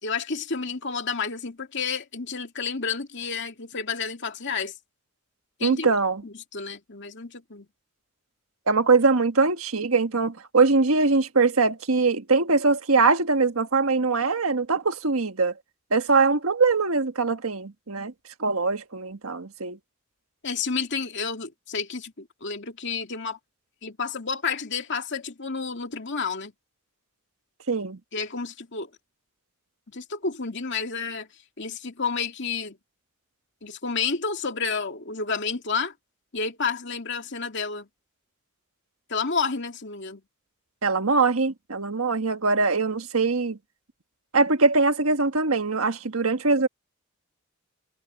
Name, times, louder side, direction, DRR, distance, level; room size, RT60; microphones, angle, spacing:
voice 1, 0.0-4.7 5.6-5.9 6.2-7.7 20.4-23.4 23.8-26.5 28.1-28.9 29.9-31.3 31.6-32.8 33.6-35.9 36.3-37.9 39.1-40.2, left 5 dB, 55° left, 2.5 m, -30 dB
voice 2, 5.6-6.2 8.7-15.5 15.9-18.1 18.4-19.8 27.7-28.0 40.8-43.6 44.3-46.7, right 4 dB, 80° right, 1.5 m, -22 dB
head